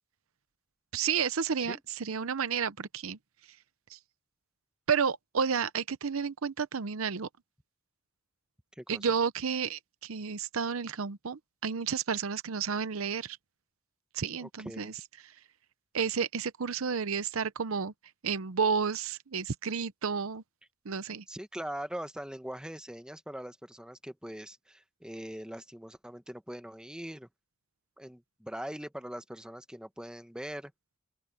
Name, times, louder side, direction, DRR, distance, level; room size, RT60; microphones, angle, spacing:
voice 1, 0.9-3.2 3.9-4.0 4.9-7.3 8.9-13.4 14.1-14.9 15.9-17.9 18.2-20.4 20.8-21.2, right 6 dB, 80° right, 0.7 m, -31 dB
voice 2, 8.8-9.1 14.4-14.9 21.3-27.3 28.0-30.7, equal, 5° right, 1.1 m, -42 dB
open air
head